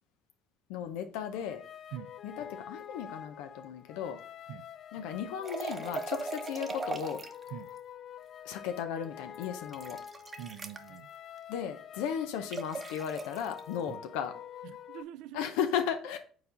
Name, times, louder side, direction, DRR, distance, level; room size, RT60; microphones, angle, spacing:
voice 1, 0.7-1.6 2.2-4.2 4.9-7.2 8.5-10.0 11.5-14.3 15.3-16.2, left 8 dB, 90° left, 0.6 m, -35 dB
sound 1, 1.3-15.0, left 8 dB, 45° left, 0.4 m, -47 dB
sound 2, 5.4-7.5 9.3-10.9 12.5-13.6, right 4 dB, 25° right, 0.8 m, -39 dB
voice 2, 10.4-11.1 13.9-14.0 14.6-15.4, right 11 dB, 80° right, 0.4 m, -44 dB
4.7 x 4.1 x 5.0 m
cardioid pair, 110°, 0 cm